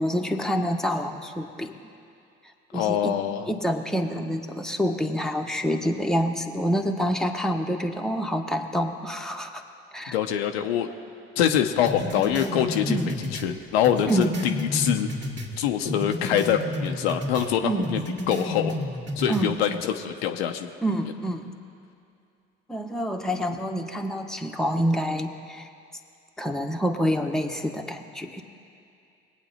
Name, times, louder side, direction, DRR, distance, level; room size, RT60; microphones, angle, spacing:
voice 1, 0.0-1.8 2.7-3.2 3.5-9.6 9.9-10.1 12.9-13.1 14.1-14.5 17.6-18.1 19.3-19.8 20.8-21.5 22.7-25.7 26.4-28.4, equal, ahead, 3 dB, 1.1 m, -27 dB
voice 2, 2.7-3.5 10.1-10.9 11.4-15.1 15.6-18.0 18.3-18.8 19.2-20.7, left 9 dB, 85° left, 6 dB, 0.7 m, -24 dB
sound 1, 11.9-15.5 15.9-17.5 17.8-19.5, left 1 dB, 40° right, 2.2 m, -31 dB
21.0 x 8.6 x 4.3 m, 2.5 s
hypercardioid pair, 50°, 30 cm